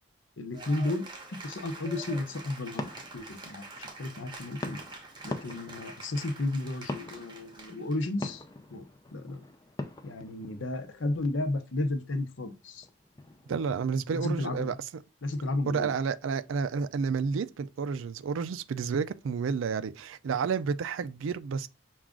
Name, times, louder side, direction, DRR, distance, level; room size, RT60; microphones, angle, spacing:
voice 1, 0.4-1.1 1.4-4.8 5.2-8.4 8.7-8.8 9.1-9.5 10.0-12.9 14.1-14.8 15.2-15.9, left 2 dB, 70° left, 0.7 m, -33 dB
Cheering / Applause, 0.5-8.1, right 3 dB, 20° right, 0.8 m, -46 dB
sound 1, 2.0-14.1, left 2 dB, 20° left, 0.4 m, -44 dB
voice 2, 13.5-14.8 15.7-21.7, right 5 dB, 75° right, 0.4 m, -30 dB
6.0 x 2.4 x 3.6 m
head